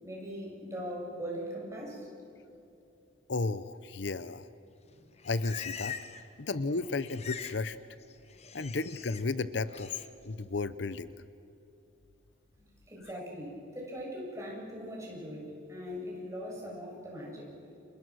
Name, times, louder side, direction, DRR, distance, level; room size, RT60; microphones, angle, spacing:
voice 1, 0.0-2.1 12.9-17.5, equal, 15° right, -4 dB, 7.6 m, -40 dB
voice 2, 3.3-4.5 5.2-6.0 6.4-7.8 8.5-11.1, left 3 dB, 65° left, 14 dB, 0.7 m, -33 dB
Livestock farm animals working animals, 4.9-6.3 6.6-7.6 7.9-9.2 9.7-10.1, left 7 dB, 35° left, 1.1 m, -44 dB
30.0 x 28.0 x 6.4 m, 2.8 s
head